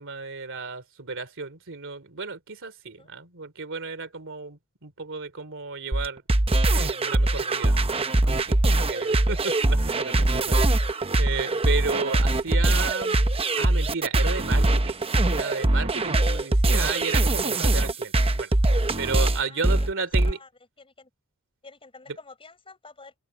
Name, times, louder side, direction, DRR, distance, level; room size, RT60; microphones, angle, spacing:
voice 1, 0.0-6.2 6.7-7.8 8.2-10.6 10.9-13.2 13.6-15.0 15.3-18.5 19.0-20.4, right 4 dB, 60° right, 2.9 m, -33 dB
sound 1, 5.9-20.3, right 2 dB, 25° right, 0.9 m, -22 dB
voice 2, 19.4-19.9 20.3-20.5 20.8-21.1 21.6-23.2, left 3 dB, 25° left, 5.3 m, -49 dB
open air
head